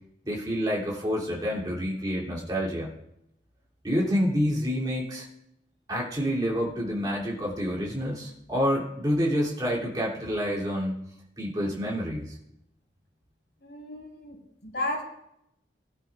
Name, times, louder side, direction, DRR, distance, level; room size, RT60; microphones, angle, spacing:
voice 1, 0.2-2.9 3.8-5.3 5.9-11.0 11.4-12.3, equal, 25° right, -3 dB, 2.9 m, -28 dB
voice 2, 13.6-15.0, left 1 dB, 80° left, -2 dB, 4.1 m, -34 dB
20.0 x 11.5 x 2.5 m, 0.80 s
head